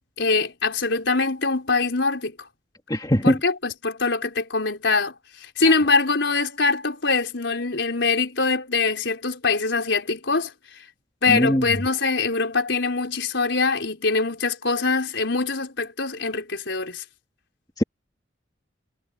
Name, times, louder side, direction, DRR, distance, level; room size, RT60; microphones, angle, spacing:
voice 1, 0.2-2.5 3.2-10.8 11.2-17.0, left 4 dB, 75° left, 4.2 m, -23 dB
voice 2, 2.9-3.4 11.3-11.7 17.8-17.9, equal, 20° left, 3.0 m, -20 dB
head